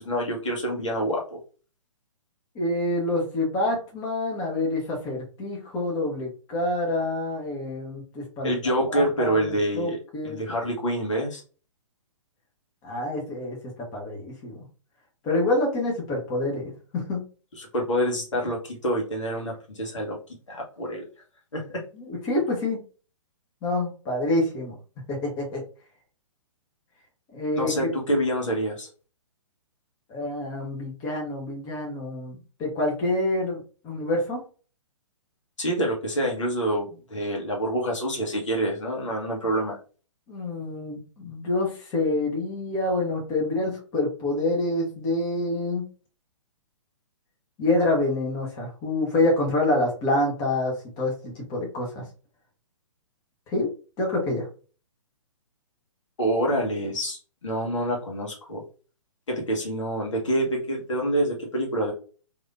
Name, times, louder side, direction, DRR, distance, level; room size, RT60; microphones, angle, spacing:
voice 1, 0.0-1.4 8.4-10.0 10.2-11.4 17.6-20.2 20.5-21.0 21.5-21.8 27.5-28.9 35.6-39.8 56.2-58.6 59.3-61.9, right 1 dB, 65° left, 0 dB, 1.1 m, -27 dB
voice 2, 2.5-8.5 8.9-10.4 12.8-14.7 15.2-17.2 21.9-22.8 23.6-24.7 25.1-25.6 27.3-27.9 30.1-34.4 40.3-45.9 47.6-52.0 53.5-53.7 54.0-54.5, left 2 dB, 25° left, -1 dB, 1.1 m, -27 dB
3.3 x 2.7 x 2.4 m, 0.37 s
figure-of-eight pair, 120°, 17 cm